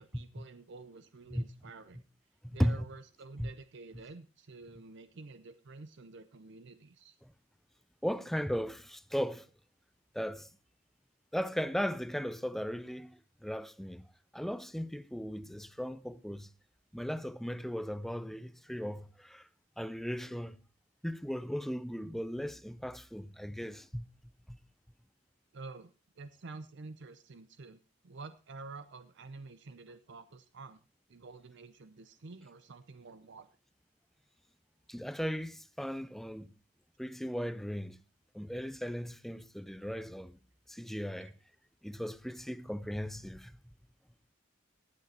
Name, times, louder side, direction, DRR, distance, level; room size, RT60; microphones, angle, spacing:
voice 1, 0.0-2.0 2.5-7.2 25.5-30.8 31.1-33.5 41.2-41.3, right 3 dB, 60° right, 0.7 m, -49 dB
voice 2, 8.0-9.5 10.1-10.5 11.3-13.1 13.4-14.0 14.3-16.5 16.9-19.4 19.8-20.6 21.0-24.1 24.5-24.6 34.9-36.5 37.0-38.0 38.3-40.4 40.7-41.3 41.8-43.5, equal, ahead, 0.5 m, -36 dB
18.5 x 6.7 x 4.2 m
head